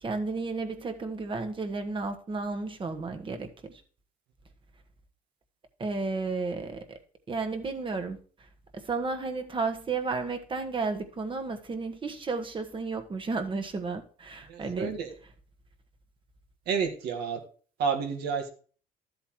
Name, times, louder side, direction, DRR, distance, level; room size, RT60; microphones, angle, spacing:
voice 1, 0.0-3.8 5.8-7.0 7.3-8.2 8.7-14.9, right 4 dB, 30° right, 7 dB, 1.3 m, -33 dB
voice 2, 14.5-15.1 16.7-17.4 17.8-18.5, right 6 dB, 80° right, 4 dB, 1.7 m, -30 dB
12.5 x 7.9 x 3.1 m, 0.41 s
cardioid pair, 110°, 17 cm